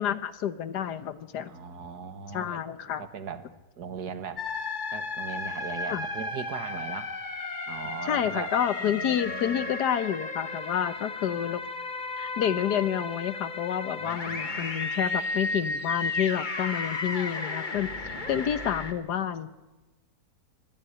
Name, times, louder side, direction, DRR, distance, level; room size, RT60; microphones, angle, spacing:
voice 1, 0.0-1.5 2.3-3.0 5.9-6.0 8.0-11.6 12.2-19.5, left 9 dB, 90° left, 13 dB, 1.6 m, -29 dB
voice 2, 1.5-2.6 3.0-3.5 3.8-4.4 4.9-7.1 7.7-8.5 8.8-9.7 14.0-14.7 17.6-18.4 18.9-19.0, right 6 dB, 80° right, 11 dB, 1.9 m, -39 dB
sound 1, 4.4-18.9, left 3 dB, 30° left, 1.5 m, -34 dB
24.0 x 13.0 x 10.0 m, 1.1 s
omnidirectional pair, 1.7 m